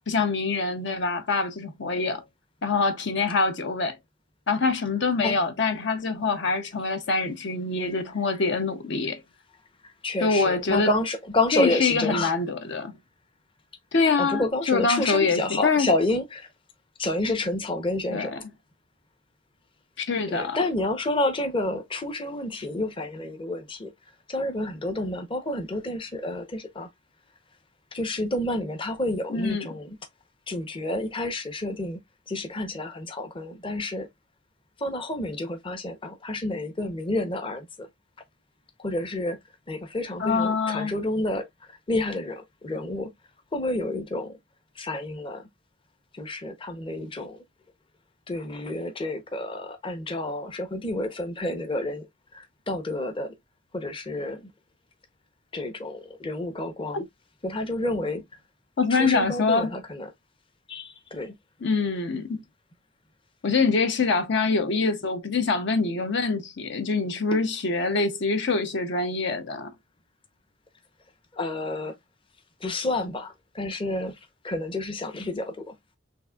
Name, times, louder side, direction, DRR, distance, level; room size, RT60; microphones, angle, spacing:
voice 1, 0.1-2.2 2.6-4.0 4.5-9.2 10.2-10.9 11.5-13.0 13.9-15.9 18.1-18.4 20.0-20.6 29.3-29.7 40.2-40.9 56.9-57.0 58.8-59.7 61.6-62.4 63.4-69.7, left 4 dB, 65° left, 0.7 m, -25 dB
voice 2, 10.0-12.3 14.2-16.5 17.0-18.4 20.3-23.9 24.3-26.9 27.9-30.0 30.5-32.0 32.3-34.1 34.8-37.9 38.8-39.4 39.7-43.1 43.5-44.4 44.8-45.5 46.1-47.4 48.3-52.1 52.3-53.3 53.7-54.5 55.5-57.1 57.4-58.2 58.9-60.1 60.7-61.3 67.3-67.4 71.3-71.9 72.6-75.8, left 2 dB, 25° left, 0.7 m, -29 dB
6.2 x 2.5 x 2.3 m
head